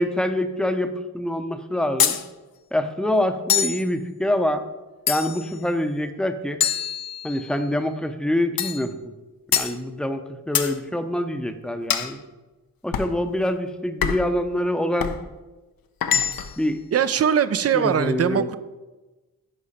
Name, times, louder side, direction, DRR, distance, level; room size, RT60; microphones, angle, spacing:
voice 1, 0.0-2.2 2.7-4.6 5.1-6.6 7.2-9.0 9.5-12.2 12.8-15.2 16.6-16.8 17.7-18.5, left 1 dB, ahead, 8 dB, 0.7 m, -25 dB
sound 1, 2.0-2.2 3.5-3.8 5.1-5.5 6.6-7.5 8.6-8.9 9.5-9.8 10.5-10.8 11.9-12.1 12.9-13.2 14.0-14.3 15.0-15.2 16.0-16.6, left 8 dB, 70° left, 0.6 m, -24 dB
voice 2, 16.9-18.6, right 8 dB, 40° right, 14 dB, 0.5 m, -21 dB
10.0 x 4.8 x 4.2 m, 1.2 s
cardioid pair, 60°, 36 cm